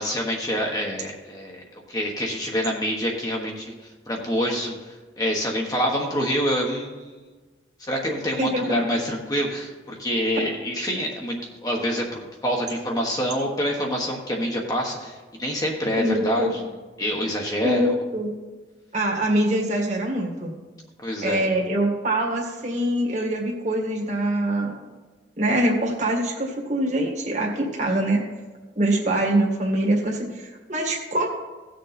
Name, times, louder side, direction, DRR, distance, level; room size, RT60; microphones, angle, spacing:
voice 1, 0.0-7.3 7.8-11.3 11.6-16.6 17.0-17.9 21.0-21.5, equal, 20° left, -1 dB, 1.2 m, -26 dB
voice 2, 8.4-8.8 16.0-16.5 17.6-18.3 18.9-20.6 21.2-24.7 25.4-28.2 28.8-31.3, right 1 dB, 40° right, 0 dB, 1.9 m, -24 dB
16.5 x 6.7 x 4.2 m, 1.3 s
head